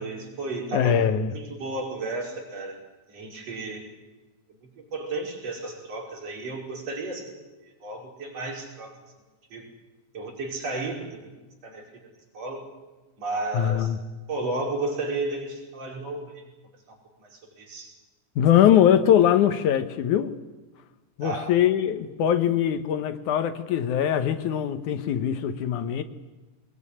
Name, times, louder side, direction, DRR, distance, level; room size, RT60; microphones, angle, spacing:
voice 1, 0.0-2.8 3.1-3.8 4.9-9.0 9.5-9.7 10.1-11.3 11.6-11.9 12.3-12.7 13.2-13.9 14.3-16.4 16.9-17.9 21.2-21.5, right 2 dB, 55° right, 1 dB, 6.0 m, -33 dB
voice 2, 0.7-1.3 13.5-14.0 18.4-20.4 21.2-26.0, left 10 dB, 75° left, 10 dB, 2.5 m, -22 dB
24.0 x 20.0 x 9.9 m, 1.2 s
omnidirectional pair, 3.5 m